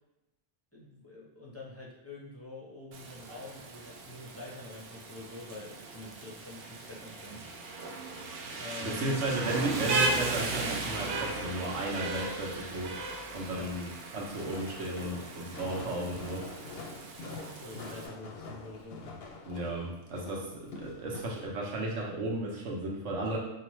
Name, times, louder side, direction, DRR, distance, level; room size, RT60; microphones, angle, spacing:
voice 1, 0.7-7.5 8.6-9.2 13.5-13.7 17.6-19.0, left 2 dB, 15° left, -5 dB, 0.5 m, -46 dB
Rain, 2.9-18.1, right 3 dB, 65° right, 0.7 m, -37 dB
voice 2, 8.8-12.9 13.3-16.4 19.5-23.4, right 1 dB, 80° right, -2 dB, 1.2 m, -34 dB
Walk footsteps, 14.2-21.5, left 3 dB, 65° left, 0.7 m, -45 dB
4.5 x 2.5 x 3.0 m, 0.89 s
omnidirectional pair, 1.2 m